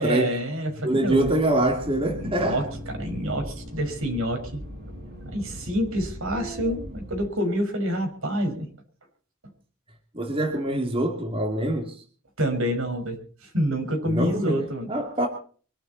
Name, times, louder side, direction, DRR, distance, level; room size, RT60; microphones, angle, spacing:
voice 1, 0.0-1.3 2.1-2.6 3.0-4.6 5.3-8.7 12.4-13.2 13.5-14.9, equal, 70° right, 5.6 m, -27 dB
voice 2, 0.8-2.6 6.3-6.8 10.1-12.0 14.1-14.6 14.9-15.3, right 1 dB, 25° right, 2.8 m, -25 dB
Accelerating revving vroom, 1.0-7.3, equal, 55° right, 5.6 m, -39 dB
25.0 x 12.0 x 4.2 m
head